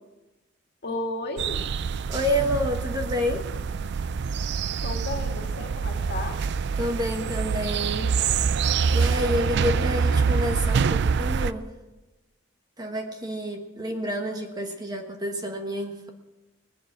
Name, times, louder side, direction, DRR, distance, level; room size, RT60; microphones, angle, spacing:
voice 1, 0.8-1.6 4.8-6.4, left 2 dB, 55° left, 2 dB, 2.2 m, -33 dB
sound 1, 1.4-11.5, right 5 dB, 60° right, 0.4 m, -25 dB
voice 2, 2.1-3.5 6.8-8.1 8.9-11.7 12.8-16.1, left 1 dB, 20° right, 4 dB, 1.3 m, -29 dB
19.5 x 7.2 x 8.5 m, 1.1 s
head